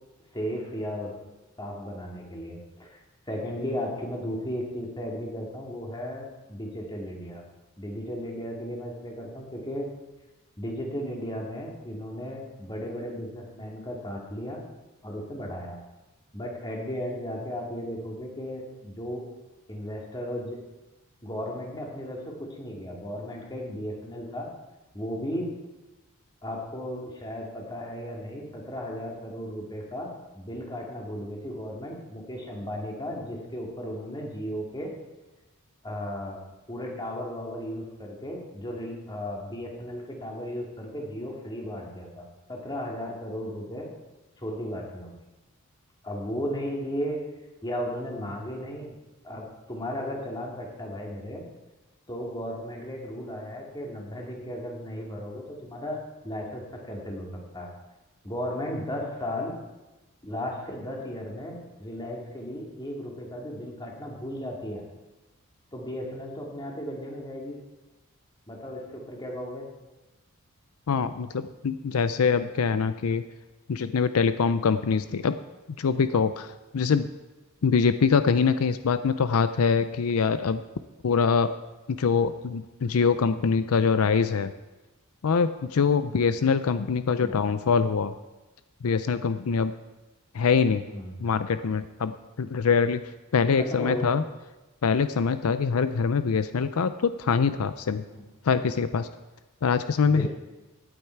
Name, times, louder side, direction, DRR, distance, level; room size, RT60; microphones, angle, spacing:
voice 1, 0.3-1.2 1.6-3.0 3.3-7.5 7.8-9.9 10.6-14.6 15.0-15.8 16.3-19.3 19.7-20.6 21.2-24.5 24.9-25.5 26.4-34.9 35.8-36.4 36.7-43.9 44.4-45.1 46.0-47.3 47.6-49.0 49.2-51.5 52.1-57.7 58.2-59.5 60.2-64.8 65.7-67.6 68.5-69.7 87.2-87.4 90.9-91.1 93.6-94.1 98.1-98.2 100.0-100.3, equal, 20° left, -1 dB, 2.4 m, -35 dB
voice 2, 70.9-73.2 73.7-75.4 75.8-77.1 77.6-80.6 81.0-81.6 81.9-84.5 85.2-88.1 88.8-89.7 90.3-90.9 91.2-93.0 93.3-94.2 94.8-98.0 98.4-99.1 99.6-100.3, left 5 dB, 80° left, 12 dB, 0.5 m, -24 dB
16.5 x 8.9 x 4.6 m, 1.1 s
head